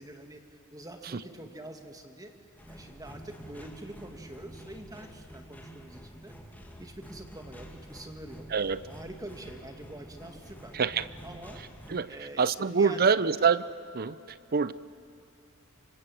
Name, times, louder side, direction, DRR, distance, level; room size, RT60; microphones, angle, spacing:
voice 1, 0.0-2.3 2.7-6.4 6.8-8.5 8.9-10.8 11.2-11.6 12.1-13.4, right 1 dB, 15° right, 5 dB, 2.1 m, -45 dB
sound 1, 2.6-12.0, equal, 10° left, 2.4 m, -48 dB
voice 2, 10.7-11.1 11.9-12.1 12.4-13.6 13.9-14.7, right 5 dB, 45° right, 17 dB, 0.6 m, -25 dB
28.0 x 25.5 x 7.8 m, 2.7 s
head